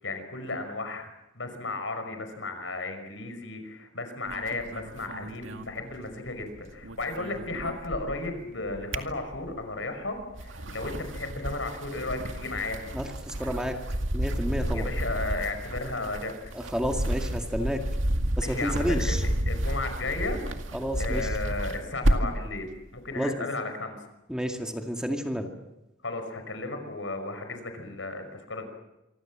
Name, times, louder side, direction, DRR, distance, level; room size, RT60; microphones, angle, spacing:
voice 1, 0.0-12.8 14.7-16.3 18.4-20.4 21.0-24.0 26.0-28.7, left 2 dB, 80° left, 7 dB, 5.5 m, -34 dB
sound 1, 4.3-6.4 6.7-8.3 8.7-9.7 10.2-22.5, right 1 dB, 90° right, 2.2 m, -31 dB
voice 2, 12.9-13.8 14.1-14.9 16.5-17.8 18.4-19.2 20.7-21.3 23.2-23.3 24.3-25.5, equal, 5° right, 3 dB, 2.1 m, -30 dB
26.5 x 24.5 x 7.5 m, 0.94 s
head